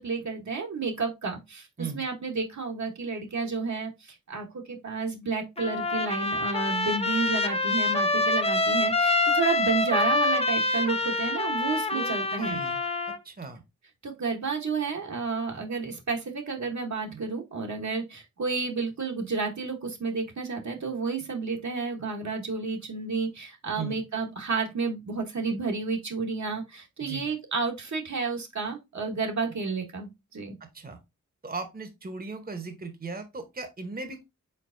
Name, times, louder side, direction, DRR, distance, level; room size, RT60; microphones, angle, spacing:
voice 1, 0.0-12.6 14.0-30.6, right 4 dB, 60° right, 1.1 m, -31 dB
Trumpet, 5.6-13.2, left 2 dB, 20° left, 0.7 m, -26 dB
voice 2, 11.9-12.8 13.1-13.6 23.8-24.0 27.0-27.3 30.7-31.0 31.4-34.2, right 4 dB, 30° right, 0.9 m, -37 dB
4.5 x 4.0 x 2.5 m
cardioid pair, 45°, 32 cm